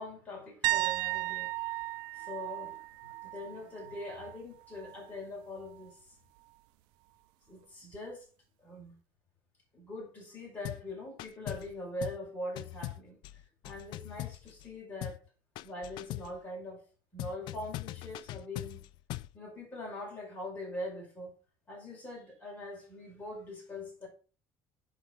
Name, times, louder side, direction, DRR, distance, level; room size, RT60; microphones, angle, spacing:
voice 1, 0.0-6.0 7.5-8.3 8.6-9.0 9.7-13.2 13.6-15.2 15.6-16.8 17.1-18.8 19.3-21.3 21.7-24.1, left 1 dB, 20° left, 5.6 m, -42 dB
sound 1, 0.6-4.4 4.7-5.1 7.9-8.0, right 20 dB, 85° right, 0.4 m, -35 dB
sound 2, 10.6-10.9 11.2-11.7 12.0-12.3 12.6-14.7 15.0-15.3 15.6-16.4 17.2-19.4, left 17 dB, 70° left, 0.4 m, -41 dB
7.9 x 6.1 x 5.6 m
cardioid pair, 140°, 8 cm